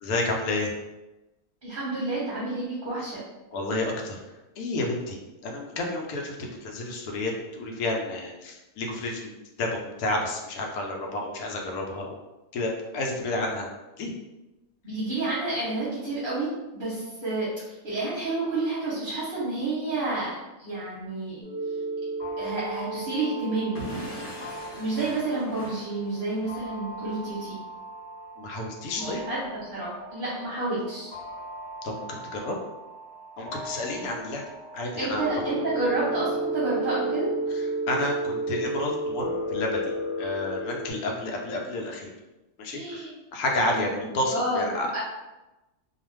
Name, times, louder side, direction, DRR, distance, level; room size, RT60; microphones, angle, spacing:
voice 1, 0.0-0.7 3.5-4.2 4.6-9.3 9.6-12.2 12.5-13.7 14.0-14.1 28.4-29.2 31.8-32.6 33.4-34.4 34.7-35.3 37.5-42.1 42.6-43.1 43.3-45.0, left 2 dB, 85° left, 0 dB, 1.0 m, -30 dB
voice 2, 1.6-3.2 14.8-20.3 20.6-21.4 22.4-23.8 24.8-27.6 28.9-29.4 29.7-31.1 35.0-37.3 42.7-43.1 43.7-44.6 44.9-45.0, right 2 dB, 45° right, -8 dB, 0.8 m, -30 dB
sound 1, 21.4-40.9, right 2 dB, 35° left, 1.0 m, -34 dB
Explosion / Shatter, 23.8-26.5, equal, 60° left, 0.9 m, -40 dB
2.4 x 2.3 x 3.1 m, 1.0 s
omnidirectional pair, 1.5 m